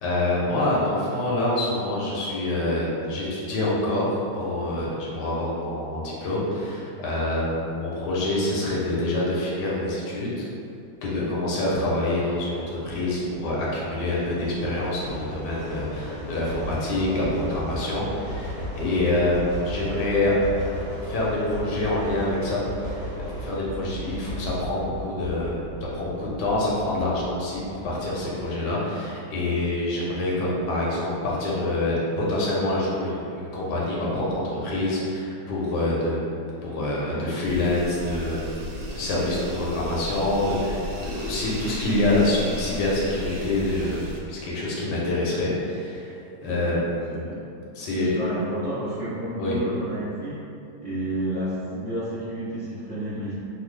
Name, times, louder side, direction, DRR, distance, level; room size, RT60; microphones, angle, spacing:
voice 1, 0.0-4.1 4.3-10.4 11.0-20.4 21.0-23.0 23.4-25.5 25.8-36.2 36.6-38.6 38.9-46.1 46.4-47.3 47.8-48.2 49.4-49.6, left 1 dB, 80° left, -5 dB, 1.3 m, -26 dB
sound 1, 12.5-28.5, equal, 55° right, 1.2 m, -36 dB
sound 2, 37.5-44.2, equal, 80° right, 1.2 m, -36 dB
voice 2, 46.4-46.8 47.1-47.4 47.9-50.3 50.8-53.3, right 1 dB, 30° right, -14 dB, 0.9 m, -31 dB
3.2 x 2.2 x 3.2 m, 2.6 s
omnidirectional pair, 1.8 m